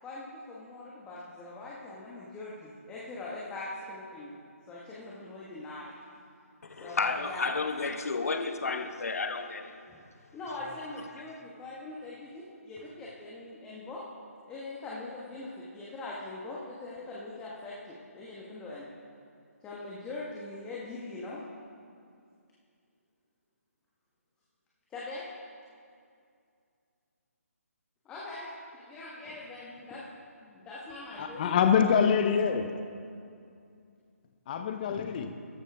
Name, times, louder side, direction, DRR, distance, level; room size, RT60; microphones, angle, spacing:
voice 1, 0.0-4.4 4.7-5.9 6.8-7.5 9.9-10.0 10.3-14.0 14.5-18.9 19.6-21.4 24.9-25.3 28.0-30.0 30.4-31.4, left 2 dB, 10° left, -6 dB, 1.3 m, -42 dB
voice 2, 6.6-9.8, left 4 dB, 75° left, 7 dB, 1.2 m, -32 dB
voice 3, 31.2-32.7 34.5-35.3, left 7 dB, 35° left, 7 dB, 0.7 m, -25 dB
13.5 x 12.0 x 3.5 m, 2.4 s
figure-of-eight pair, 155°, 8 cm